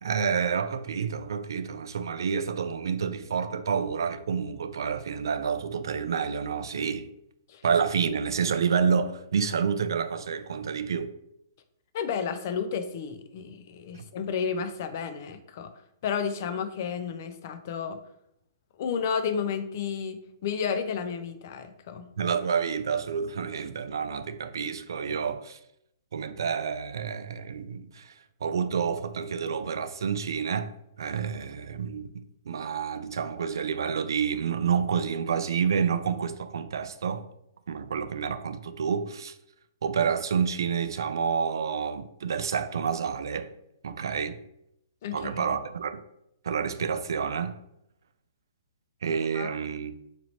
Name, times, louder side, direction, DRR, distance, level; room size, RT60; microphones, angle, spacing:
voice 1, 0.0-7.1 7.6-11.1 13.9-14.0 22.2-25.6 26.1-28.1 28.4-30.7 31.0-32.1 32.5-37.3 37.7-39.3 39.8-43.5 43.8-44.4 45.1-46.0 46.4-47.6 49.0-49.9, right 6 dB, 80° right, 0.4 m, -29 dB
voice 2, 11.9-15.7 16.0-18.0 18.8-22.1 45.0-45.5 49.3-49.5, left 6 dB, 45° left, 0.4 m, -32 dB
2.9 x 2.7 x 4.3 m
hypercardioid pair, 160°, 2 cm